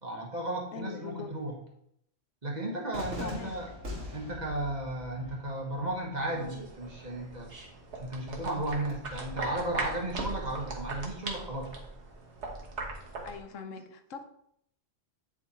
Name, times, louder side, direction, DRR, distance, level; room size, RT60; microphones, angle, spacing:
voice 1, 0.0-1.5 2.4-3.7 4.1-7.5 8.0-11.7, right 1 dB, 35° right, 0 dB, 1.3 m, -34 dB
voice 2, 0.7-1.3 3.2-3.5 13.2-14.2, left 6 dB, 85° left, 8 dB, 1.1 m, -41 dB
Cheering / Fireworks, 2.9-8.9, left 1 dB, 90° right, 2.0 m, -45 dB
sound 1, 6.3-13.4, right 3 dB, 65° right, 1.5 m, -40 dB
9.8 x 3.4 x 4.2 m, 0.73 s
omnidirectional pair, 1.3 m